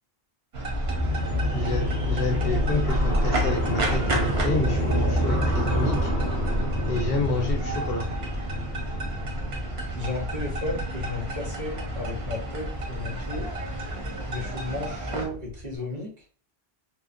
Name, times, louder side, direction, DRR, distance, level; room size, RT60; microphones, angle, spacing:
sound 1, 0.5-15.3, right 1 dB, 85° right, 1.0 m, -31 dB
sound 2, 0.8-15.7, equal, 15° left, 0.8 m, -29 dB
voice 1, 1.5-6.1 6.9-8.1, left 2 dB, 70° left, 2 dB, 0.8 m, -29 dB
voice 2, 9.9-13.5 14.3-16.1, left 2 dB, 45° right, -3 dB, 1.0 m, -34 dB
2.9 x 2.1 x 2.5 m, 0.42 s
omnidirectional pair, 1.0 m